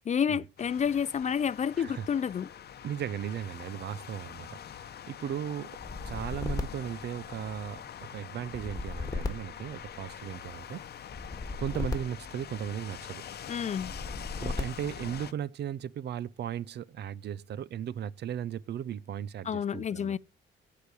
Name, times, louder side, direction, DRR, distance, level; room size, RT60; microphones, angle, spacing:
voice 1, 0.0-2.5 13.5-13.9 19.5-20.2, left 7 dB, 35° left, 0.4 m, -29 dB
sound 1, 0.6-15.3, left 9 dB, 55° left, 0.8 m, -45 dB
voice 2, 2.8-10.8 11.6-13.2 14.4-20.2, right 9 dB, 60° right, 0.6 m, -37 dB
sound 2, 5.8-7.7 8.4-10.4 11.1-13.0 13.7-15.1, left 3 dB, 20° left, 1.8 m, -37 dB
11.0 x 5.0 x 8.2 m
cardioid pair, 90°, 20 cm